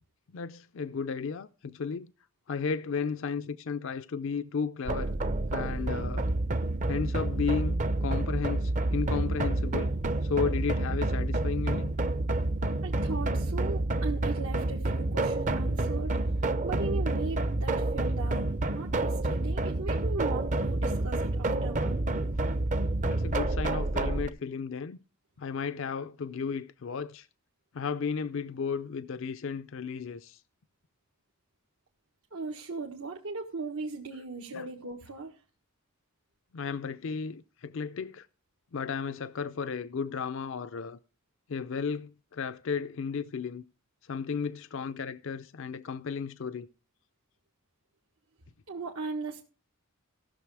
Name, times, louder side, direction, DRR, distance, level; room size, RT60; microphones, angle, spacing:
voice 1, 0.3-2.1 2.5-5.1 5.5-6.3 6.9-9.9 10.2-11.9 23.0-25.0 25.4-27.3 27.7-30.4 34.5-34.7 36.5-38.3 38.7-41.0 41.5-43.6 44.0-46.7, left 5 dB, 60° left, 0.4 m, -34 dB
sound 1, 4.8-24.3, right 2 dB, 35° right, 0.6 m, -29 dB
voice 2, 12.8-16.1 16.6-22.0 32.3-35.4 48.7-49.4, right 3 dB, 85° right, 1.6 m, -38 dB
15.5 x 6.6 x 4.7 m
head